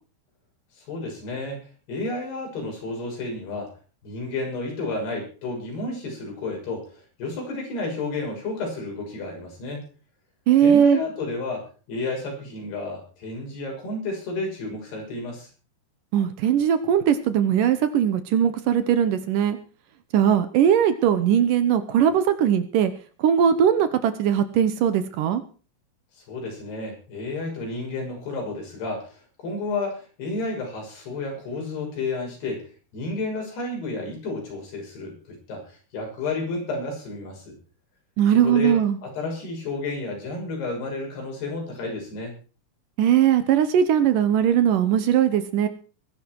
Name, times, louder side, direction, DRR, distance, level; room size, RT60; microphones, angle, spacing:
voice 1, 0.9-1.6 1.9-3.7 4.0-9.9 10.6-15.5 26.3-32.6 32.9-37.6 38.3-42.3, left 3 dB, 90° left, 1 dB, 8.4 m, -31 dB
voice 2, 10.5-11.0 16.1-19.6 20.1-22.9 23.2-25.4 38.2-39.0 43.0-45.7, right 9 dB, 70° right, 11 dB, 2.4 m, -20 dB
21.5 x 11.0 x 4.7 m, 0.37 s
omnidirectional pair, 4.5 m